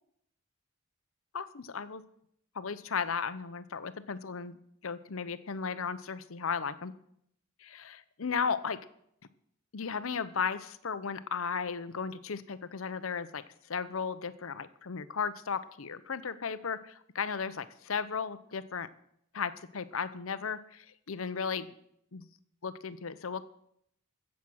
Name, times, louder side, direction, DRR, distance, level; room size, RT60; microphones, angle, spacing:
voice 1, 1.3-2.0 2.5-4.6 4.8-6.9 7.6-8.8 9.7-13.4 13.7-18.9 19.3-21.7 22.1-22.2 22.6-23.4, left 6 dB, 80° left, 14 dB, 0.7 m, -35 dB
16.0 x 7.3 x 6.3 m, 0.72 s
head